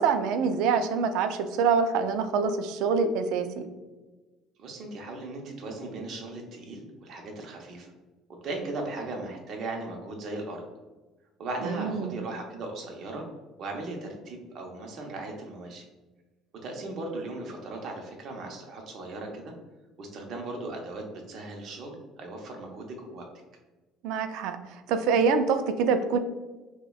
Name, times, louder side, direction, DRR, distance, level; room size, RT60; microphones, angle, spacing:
voice 1, 0.0-3.7 11.6-12.1 24.0-26.2, right 5 dB, 70° right, 9 dB, 0.3 m, -25 dB
voice 2, 4.6-7.9 8.3-10.6 11.4-13.3 13.6-15.9 16.6-19.5 20.0-23.2, right 2 dB, 45° right, 1 dB, 0.7 m, -37 dB
5.3 x 2.1 x 2.3 m, 1.2 s
cardioid pair, 160°, 0 cm